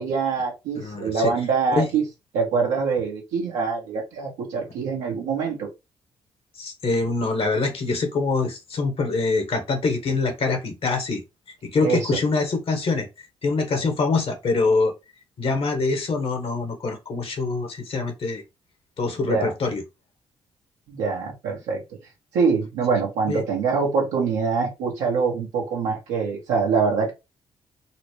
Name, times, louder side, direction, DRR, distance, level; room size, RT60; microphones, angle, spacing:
voice 1, 0.0-2.0 2.3-5.7 11.8-12.2 19.3-19.5 20.9-21.8 22.3-27.1, right 5 dB, 85° right, 1.2 m, -24 dB
voice 2, 0.7-1.3 1.7-1.9 6.6-11.2 11.6-14.9 15.4-18.4 19.0-19.8 23.3-23.4, left 3 dB, 55° left, 1.1 m, -24 dB
4.1 x 2.0 x 3.0 m
hypercardioid pair, 45°, 12 cm